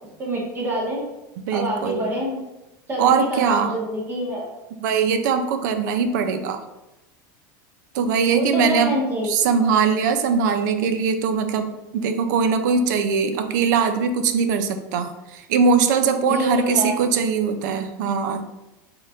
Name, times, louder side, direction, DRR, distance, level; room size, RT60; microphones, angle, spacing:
voice 1, 0.0-1.0 1.5-2.4 2.9-4.5 8.3-9.3 16.3-16.9, right 1 dB, 20° right, -3 dB, 1.2 m, -26 dB
voice 2, 1.5-2.1 3.0-3.7 4.8-6.6 7.9-9.0 9.3-18.5, right 5 dB, 70° right, 9 dB, 0.5 m, -21 dB
4.3 x 3.8 x 2.5 m, 0.99 s
supercardioid pair, 145°, 10 cm